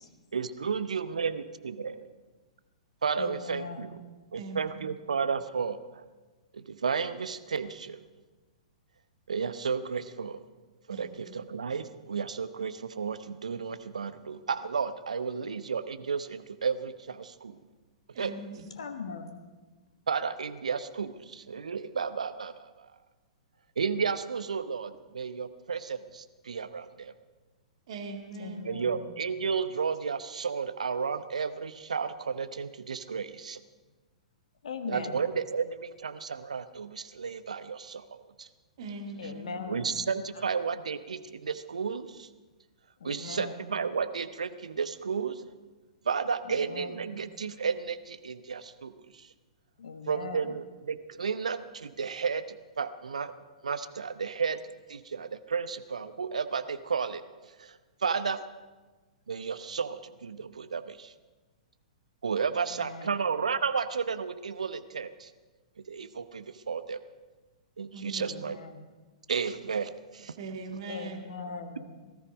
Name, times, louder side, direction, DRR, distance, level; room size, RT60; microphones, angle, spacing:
voice 1, 0.3-2.1 3.0-4.0 4.3-6.0 6.5-8.0 9.3-10.4 10.9-17.6 18.2-18.3 20.1-22.9 23.8-27.1 28.6-33.6 34.9-38.5 39.7-42.3 43.0-45.4 46.0-49.3 50.1-53.3 53.6-54.6 54.9-57.2 57.6-58.4 59.3-61.1 62.2-65.3 65.9-67.0 67.8-68.6 69.3-70.3, right 5 dB, 70° right, 12 dB, 0.8 m, -33 dB
voice 2, 3.2-4.0 18.8-19.5 28.4-29.1 34.6-35.2 39.2-40.0 43.0-43.7 46.5-47.3 49.8-50.5 62.7-63.1 68.2-68.9 70.9-72.1, left 5 dB, 65° left, 7 dB, 1.3 m, -40 dB
voice 3, 4.3-4.8 10.9-11.1 18.1-18.7 27.9-28.7 38.8-39.7 67.9-68.4 70.4-71.2, right 3 dB, 50° right, 3 dB, 2.4 m, -41 dB
18.5 x 13.5 x 5.2 m, 1.3 s
figure-of-eight pair, 110°, 4 cm